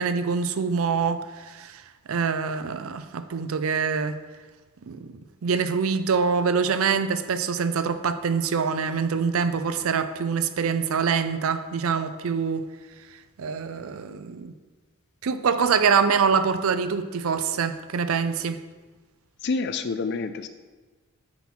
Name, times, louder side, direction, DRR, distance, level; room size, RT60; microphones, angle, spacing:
voice 1, 0.0-1.8 2.1-4.2 4.9-12.7 13.4-14.5 15.2-18.6, right 6 dB, 70° right, 0.5 m, -25 dB
voice 2, 19.4-20.5, left 4 dB, 50° left, 0.4 m, -28 dB
9.6 x 4.3 x 4.3 m
head